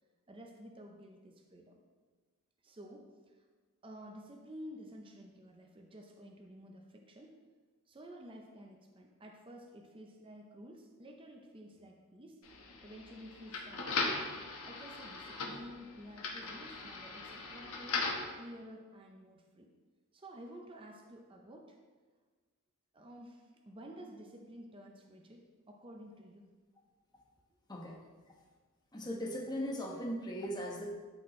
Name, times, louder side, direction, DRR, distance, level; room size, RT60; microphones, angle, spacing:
voice 1, 0.3-1.8 2.6-3.4 3.8-7.4 7.9-12.4 12.8-14.1 14.6-18.1 18.4-19.7 20.1-21.8 22.9-25.4 25.7-26.5, equal, 25° right, 1 dB, 0.6 m, -51 dB
sound 1, 12.4-18.3, left 3 dB, 80° left, 1.2 m, -39 dB
voice 2, 28.9-30.9, equal, 20° left, -1 dB, 1.1 m, -38 dB
12.5 x 4.3 x 3.2 m, 1.4 s
head